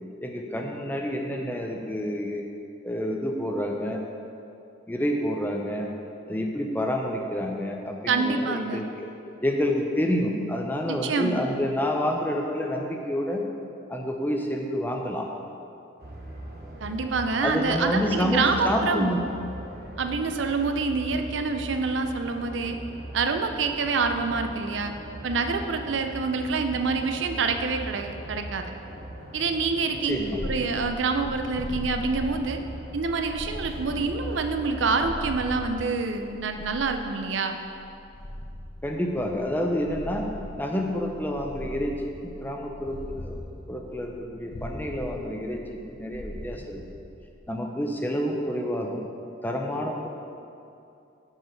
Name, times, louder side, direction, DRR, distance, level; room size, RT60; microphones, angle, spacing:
voice 1, 0.2-2.5 2.8-4.0 4.9-5.9 6.3-9.1 9.4-13.4 13.9-15.3 17.4-19.2 30.0-30.4 38.8-40.3 40.6-42.0 42.2-43.4 43.7-46.8 47.5-49.1 49.4-50.1, equal, 10° left, 1 dB, 0.6 m, -28 dB
voice 2, 8.1-8.9 10.9-11.5 16.8-19.2 20.0-22.8 23.1-24.9 25.2-28.7 29.3-30.2 30.4-32.6 32.9-37.6, right 4 dB, 85° right, 6 dB, 0.5 m, -26 dB
sound 1, 16.0-35.9, right 1 dB, 55° right, 1.0 m, -40 dB
Purr, 30.0-47.5, left 1 dB, 80° left, 1.0 m, -40 dB
7.9 x 4.7 x 5.8 m, 2.7 s
head